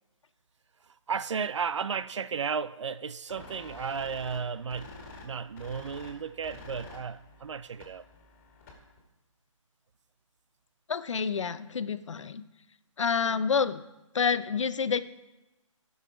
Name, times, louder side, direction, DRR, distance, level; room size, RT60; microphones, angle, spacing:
voice 1, 1.1-4.9 5.2-8.0, right 6 dB, 60° right, 0.4 m, -34 dB
sound 1, 3.3-9.0, left 3 dB, 25° left, 2.2 m, -49 dB
voice 2, 10.9-12.4 13.0-13.8 14.1-15.0, left 6 dB, 65° left, 0.7 m, -28 dB
12.0 x 5.6 x 5.0 m
hypercardioid pair, 165°, 17 cm